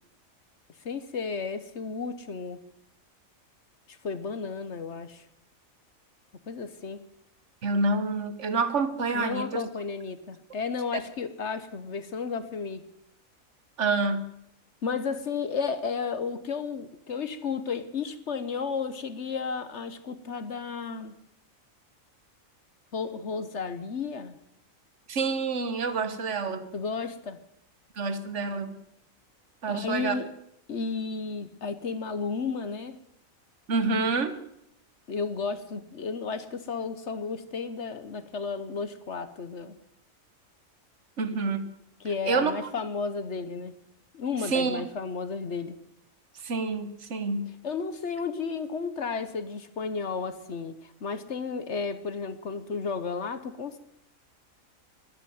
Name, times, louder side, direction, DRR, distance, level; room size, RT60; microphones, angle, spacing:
voice 1, 0.8-2.6 3.9-5.2 6.5-7.0 9.1-12.8 14.8-21.1 22.9-24.4 26.7-27.4 29.7-30.3 30.7-33.0 35.1-39.8 42.0-43.7 44.1-45.8 47.6-53.8, left 5 dB, 55° left, 12 dB, 1.3 m, -33 dB
voice 2, 7.6-9.6 13.8-14.2 25.1-26.7 28.0-28.8 29.6-30.1 33.7-34.4 41.2-41.7 42.2-42.5 44.4-44.8 46.3-47.5, right 4 dB, 60° right, 12 dB, 1.6 m, -27 dB
13.5 x 11.5 x 9.4 m, 0.76 s
omnidirectional pair, 1.4 m